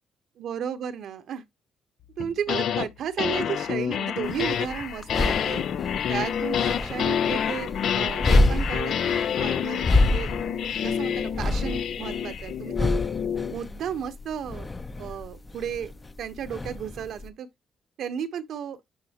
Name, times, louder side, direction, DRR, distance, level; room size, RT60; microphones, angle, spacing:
voice 1, 0.4-1.4 2.2-5.6 6.1-10.3 10.8-12.9 13.5-14.7 15.0-15.9 16.2-17.5 18.0-18.8, right 8 dB, 70° right, 1.0 m, -33 dB
sound 1, 2.2-2.9 3.2-13.6, left 8 dB, 70° left, 0.5 m, -28 dB
sound 2, 4.2-17.3, left 2 dB, 25° left, 0.7 m, -28 dB
9.6 x 4.1 x 2.9 m
cardioid pair, 90°, 0 cm